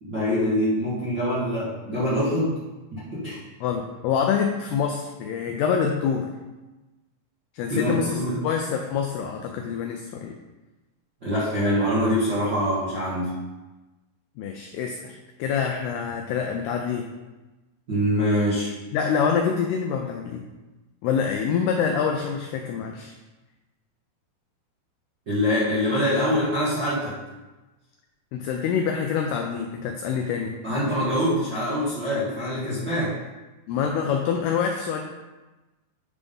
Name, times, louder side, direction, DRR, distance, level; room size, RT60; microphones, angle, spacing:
voice 1, 0.0-2.6 2.9-3.4 5.5-5.6 7.7-8.4 11.2-13.3 17.9-18.7 25.3-27.1 30.6-33.1, equal, 65° right, -11 dB, 1.1 m, -24 dB
voice 2, 3.6-6.3 7.5-10.4 11.4-11.5 14.4-17.1 18.9-20.4 21.0-23.2 28.3-30.6 33.7-35.0, left 7 dB, 85° left, 3 dB, 2.3 m, -26 dB
9.7 x 3.5 x 5.3 m, 1.1 s
omnidirectional pair, 5.3 m